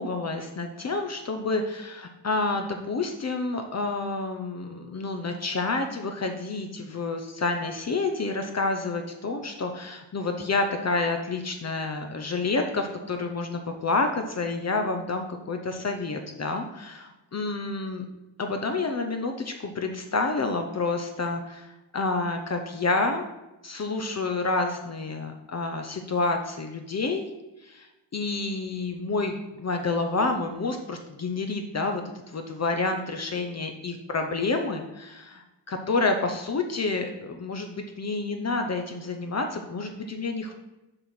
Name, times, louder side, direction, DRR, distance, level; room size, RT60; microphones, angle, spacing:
voice 1, 0.0-18.0 18.4-23.3 23.6-27.3 27.6-27.9 28.1-40.5, left 3 dB, 35° left, 4 dB, 0.7 m, -29 dB
6.7 x 5.7 x 6.0 m, 1.0 s
wide cardioid pair, 140°, 45 cm